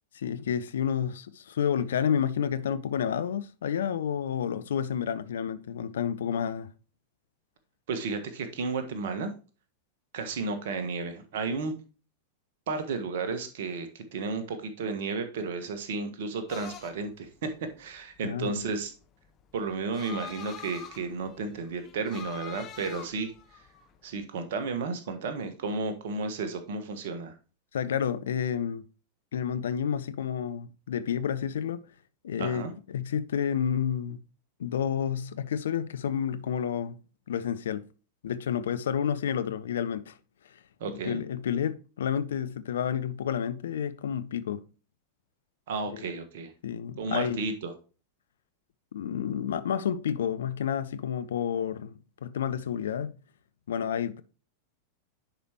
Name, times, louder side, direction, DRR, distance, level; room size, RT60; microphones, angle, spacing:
voice 1, 0.1-6.7 18.2-18.6 27.7-28.8 29.3-31.8 32.2-34.2 34.6-36.9 37.3-37.9 38.2-40.1 41.0-44.6 45.9-46.0 46.6-47.4 48.9-53.1 53.7-54.2, left 8 dB, 65° left, 0.6 m, -30 dB
voice 2, 7.9-9.3 10.1-11.7 12.7-17.5 17.8-18.9 19.5-23.3 24.0-27.3 32.4-32.7 40.8-41.2 45.7-46.5 47.0-47.7, right 4 dB, 55° right, 1.4 m, -33 dB
sound 1, 16.5-24.2, left 7 dB, 30° left, 1.1 m, -45 dB
10.0 x 5.1 x 2.9 m
figure-of-eight pair, 90°, 0 cm